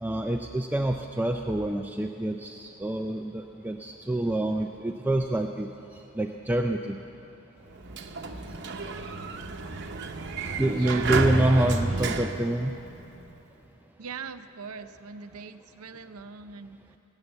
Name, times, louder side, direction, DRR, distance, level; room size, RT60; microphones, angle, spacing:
voice 1, 0.0-5.7 6.1-7.0 10.6-12.7, right 1 dB, 10° right, 3 dB, 0.3 m, -27 dB
Sliding door, 7.7-13.3, right 3 dB, 50° right, 0.8 m, -31 dB
voice 2, 10.7-12.1 14.0-16.8, right 5 dB, 80° right, 10 dB, 0.6 m, -42 dB
18.5 x 8.1 x 8.0 m, 3.0 s
head